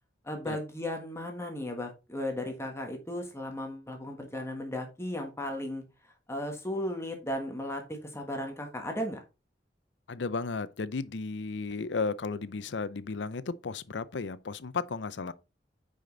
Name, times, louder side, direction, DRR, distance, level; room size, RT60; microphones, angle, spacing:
voice 1, 0.2-9.2, left 1 dB, 15° left, 1.5 m, -36 dB
voice 2, 10.1-15.3, left 4 dB, 90° left, 0.6 m, -34 dB
9.0 x 5.1 x 3.9 m
head